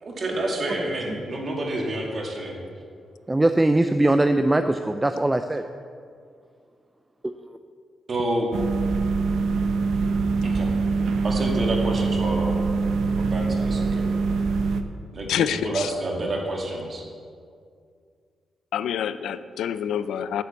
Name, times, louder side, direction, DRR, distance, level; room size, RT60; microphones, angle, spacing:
voice 1, 0.0-2.6 8.1-8.5 10.4-10.7 11.2-12.6 13.2-14.1 15.1-17.0, right 1 dB, 40° right, 0 dB, 2.1 m, -28 dB
voice 2, 3.3-5.6, right 1 dB, 15° right, 8 dB, 0.4 m, -21 dB
sound 1, 8.5-14.8, right 4 dB, 75° right, 0.7 m, -24 dB
voice 3, 15.3-15.9 18.7-20.4, left 9 dB, 85° left, 14 dB, 0.4 m, -27 dB
8.6 x 6.9 x 8.1 m, 2.2 s
cardioid pair, 115°, 0 cm